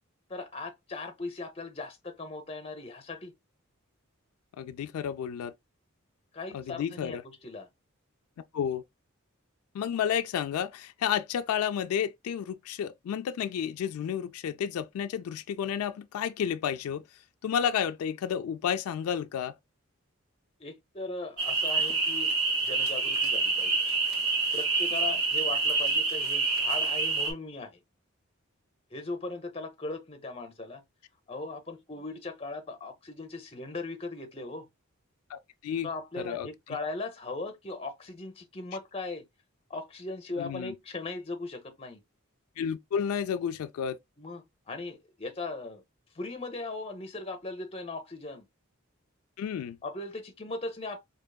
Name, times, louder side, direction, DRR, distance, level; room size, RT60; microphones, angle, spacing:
voice 1, 0.3-3.3 6.3-7.7 20.6-23.8 24.5-27.8 28.9-30.8 31.3-34.7 35.8-39.2 39.7-42.0 44.2-45.8 46.1-48.4 49.8-51.0, left 3 dB, 25° left, 0.7 m, -38 dB
voice 2, 4.6-5.5 6.5-7.2 8.5-8.8 9.7-17.0 17.4-19.5 35.3-35.9 36.2-36.5 40.4-40.7 42.6-44.0 49.4-49.8, left 8 dB, 90° left, 0.3 m, -31 dB
sound 1, 21.4-27.3, right 4 dB, 80° right, 1.3 m, -27 dB
4.5 x 2.8 x 2.2 m
head